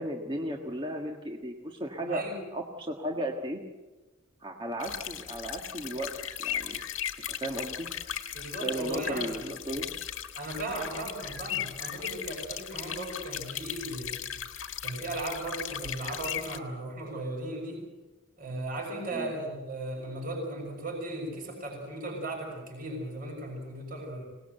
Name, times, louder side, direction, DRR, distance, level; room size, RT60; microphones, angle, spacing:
voice 1, 0.0-2.2 2.5-3.6 4.4-6.1 6.4-6.8 7.3-7.9 8.6-9.9 15.8-15.9 19.1-19.3, right 1 dB, 25° right, 2 dB, 1.5 m, -35 dB
sound 1, 4.8-16.6, left 10 dB, 75° left, 1.6 m, -37 dB
voice 2, 8.3-9.3 10.3-14.3 14.8-17.9 18.4-24.2, right 1 dB, 45° right, 0 dB, 6.2 m, -36 dB
25.5 x 19.0 x 8.0 m, 1.2 s
head